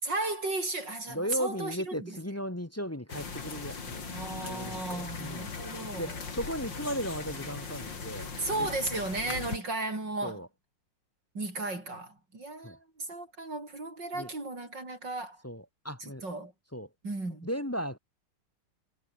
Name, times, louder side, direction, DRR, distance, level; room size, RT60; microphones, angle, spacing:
voice 1, 0.0-2.2 4.1-6.2 8.4-10.4 11.3-15.4 16.0-16.5 17.0-17.5, right 2 dB, 75° right, 7.6 m, -35 dB
voice 2, 1.1-4.2 4.4-5.5 5.9-8.3 8.6-8.7 9.3-9.4 10.2-10.5 12.6-12.8 14.1-14.3 15.4-16.2 16.7-16.9 17.4-18.0, equal, 10° left, 0.8 m, -36 dB
sound 1, 3.1-9.6, left 5 dB, 80° left, 3.8 m, -39 dB
omnidirectional pair, 2.0 m